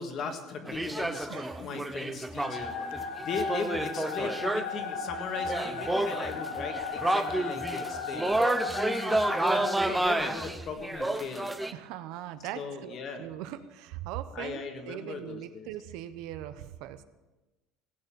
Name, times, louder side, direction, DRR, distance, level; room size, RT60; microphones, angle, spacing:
voice 1, 0.0-11.5 12.5-13.3 14.3-15.7, left 5 dB, 30° left, 6 dB, 1.6 m, -38 dB
sound 1, 0.7-4.8 5.1-5.2 5.4-11.7, right 2 dB, 5° right, 0.5 m, -30 dB
voice 2, 1.3-1.8 11.7-17.0, right 12 dB, 60° right, 11 dB, 0.8 m, -40 dB
sound 2, 2.4-9.8, left 4 dB, 55° left, 1.5 m, -36 dB
17.0 x 8.3 x 7.0 m, 1.1 s
cardioid pair, 175°, 0 cm